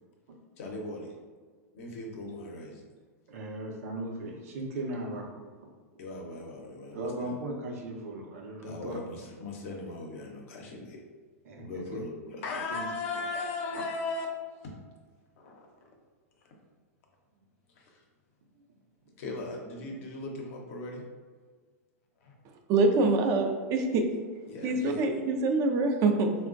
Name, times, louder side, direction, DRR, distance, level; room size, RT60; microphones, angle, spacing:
voice 1, 0.6-1.1 1.8-2.8 6.0-7.3 8.6-11.0 11.6-14.3 14.6-14.7 15.4-15.9 17.7-18.0 19.2-21.0 22.2-22.3 24.5-25.2, left 3 dB, 65° left, 1 dB, 0.7 m, -38 dB
voice 2, 3.3-5.3 6.9-9.0 11.4-11.6 11.9-12.0 12.7-12.9, right 1 dB, 70° right, -1 dB, 0.7 m, -37 dB
voice 3, 22.7-24.0 24.6-26.4, right 3 dB, 40° right, 4 dB, 0.4 m, -25 dB
3.6 x 2.2 x 2.5 m, 1.5 s
hypercardioid pair, 110°, 8 cm